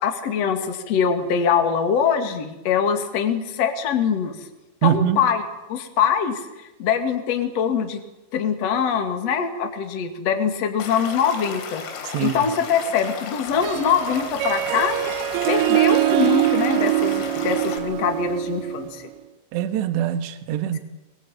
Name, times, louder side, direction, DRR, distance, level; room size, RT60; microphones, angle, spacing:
voice 1, 0.0-4.5 4.8-5.4 5.7-6.5 6.8-8.0 8.3-11.8 12.2-15.0 15.5-19.1, left 7 dB, 45° left, 6 dB, 2.7 m, -23 dB
voice 2, 4.8-5.2 12.0-12.4 19.5-20.8, right 10 dB, 70° right, 9 dB, 3.5 m, -23 dB
Stream / Liquid, 10.8-17.8, left 6 dB, 85° left, 5.5 m, -34 dB
Harp, 13.5-19.0, right 15 dB, 85° right, 3.6 m, -23 dB
25.5 x 21.0 x 9.1 m, 1.0 s
omnidirectional pair, 5.6 m